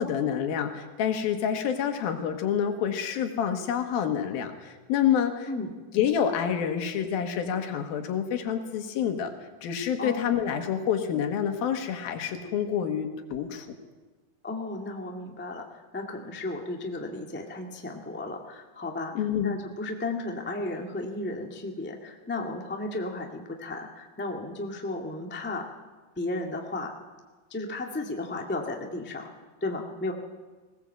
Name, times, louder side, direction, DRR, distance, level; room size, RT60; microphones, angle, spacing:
voice 1, 0.0-5.5 5.9-9.3 9.6-13.7 19.1-19.6, left 8 dB, 80° left, 6 dB, 3.4 m, -28 dB
voice 2, 10.0-10.3 14.4-19.1 19.4-25.7 26.2-26.9 27.5-29.3 29.6-30.1, left 2 dB, 15° left, 1 dB, 0.4 m, -34 dB
20.5 x 18.0 x 7.7 m, 1.3 s
omnidirectional pair, 4.2 m